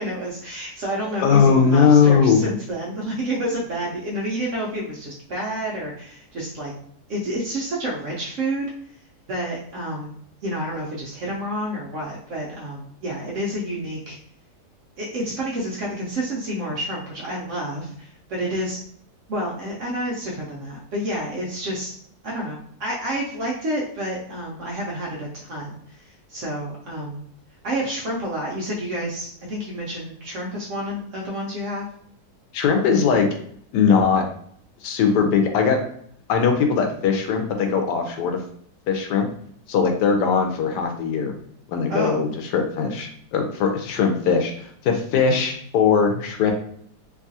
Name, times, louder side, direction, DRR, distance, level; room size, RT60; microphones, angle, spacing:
voice 1, 0.0-6.7 7.1-8.6 9.3-10.1 10.4-14.2 15.0-18.8 19.3-22.0 22.2-27.2 27.6-31.9 41.9-42.2, right 1 dB, 65° right, -3 dB, 0.8 m, -29 dB
voice 2, 1.2-2.4 32.5-33.3 33.7-34.2 34.8-35.8 36.3-38.4 38.9-39.3 39.7-41.3 41.7-46.5, left 6 dB, 85° left, 4 dB, 1.2 m, -20 dB
3.0 x 2.3 x 2.6 m, 0.63 s
omnidirectional pair, 1.8 m